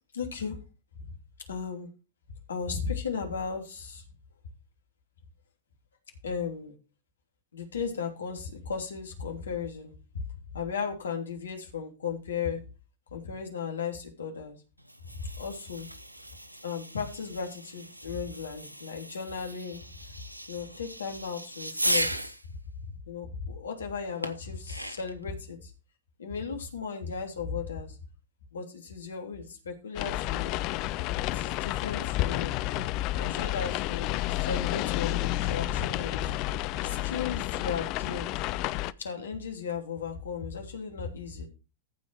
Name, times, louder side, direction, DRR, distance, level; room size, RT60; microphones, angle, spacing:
voice 1, 0.1-0.6 1.5-1.9 2.5-4.0 6.2-6.7 7.5-10.2 10.5-12.6 13.1-14.6 15.2-15.9 16.6-19.8 20.5-22.3 23.1-25.7 26.2-28.0 28.5-30.6 31.3-32.6 33.2-36.3 36.8-38.3 39.0-41.5, left 6 dB, 70° left, 3 dB, 3.0 m, -35 dB
Fireworks, 14.8-22.5 24.2-25.2, right 1 dB, 85° right, 0.9 m, -36 dB
sound 1, 30.0-38.9, left 16 dB, 40° left, 0.5 m, -30 dB
14.5 x 5.3 x 4.8 m, 0.31 s
figure-of-eight pair, 90°, 0 cm